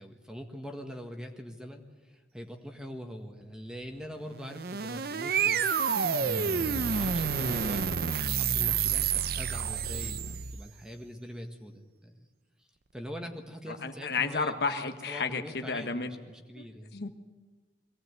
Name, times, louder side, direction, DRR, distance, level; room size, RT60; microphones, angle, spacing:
voice 1, 0.0-8.0 8.3-12.3 12.9-17.0, equal, 5° right, 4 dB, 1.6 m, -43 dB
sound 1, 4.3-10.7, right 6 dB, 55° right, 0.7 m, -29 dB
voice 2, 13.7-16.1 16.6-16.7 16.9-17.1, left 4 dB, 60° left, 7 dB, 1.2 m, -32 dB
23.0 x 17.5 x 8.1 m, 1.3 s
head